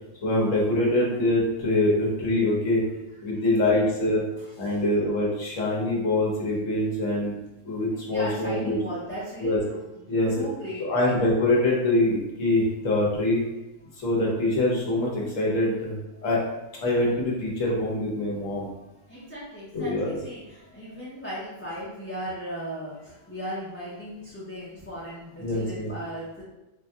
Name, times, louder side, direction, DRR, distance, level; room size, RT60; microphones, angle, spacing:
voice 1, 0.2-2.8 3.2-4.2 4.6-7.4 7.6-8.8 9.4-9.6 10.1-10.4 10.8-13.4 14.0-16.0 16.2-16.4 16.8-18.7 19.7-20.2 25.4-25.9, left 1 dB, 85° left, -4 dB, 1.4 m, -24 dB
voice 2, 8.1-10.1 10.4-11.2 19.1-23.0 23.3-26.4, equal, 15° left, -9 dB, 0.5 m, -37 dB
5.1 x 2.6 x 2.3 m, 1.0 s
omnidirectional pair, 1.3 m